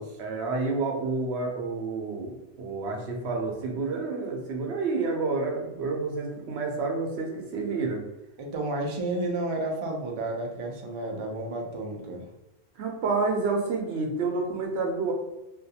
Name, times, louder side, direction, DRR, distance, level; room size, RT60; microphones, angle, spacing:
voice 1, 0.2-8.0 12.8-15.1, right 3 dB, 85° right, 0 dB, 0.9 m, -29 dB
voice 2, 8.4-12.3, right 2 dB, 45° right, 1 dB, 0.4 m, -31 dB
2.5 x 2.2 x 2.7 m, 0.93 s
omnidirectional pair, 1.1 m